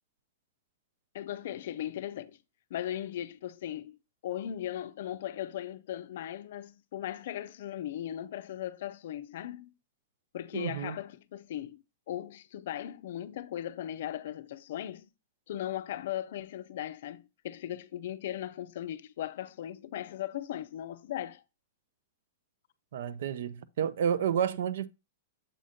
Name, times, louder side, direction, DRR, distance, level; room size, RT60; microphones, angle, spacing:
voice 1, 1.1-2.4 2.7-4.0 4.2-9.7 10.3-15.1 15.5-21.4, left 11 dB, 50° left, 0.5 m, -38 dB
voice 2, 10.5-11.0 22.9-24.9, right 8 dB, 55° right, 0.4 m, -30 dB
7.5 x 2.7 x 5.0 m
supercardioid pair, 175°, 0 cm